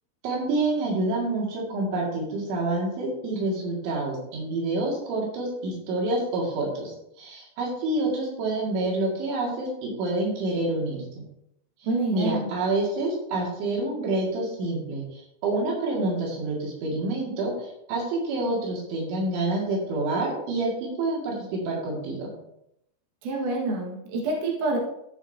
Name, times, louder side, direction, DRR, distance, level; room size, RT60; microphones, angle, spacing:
voice 1, 0.2-11.3 12.1-22.3, right 2 dB, 90° right, -2 dB, 4.7 m, -28 dB
voice 2, 11.8-12.5 23.2-24.8, right 2 dB, 55° right, -1 dB, 2.8 m, -27 dB
13.5 x 6.5 x 2.8 m, 0.77 s
omnidirectional pair, 5.2 m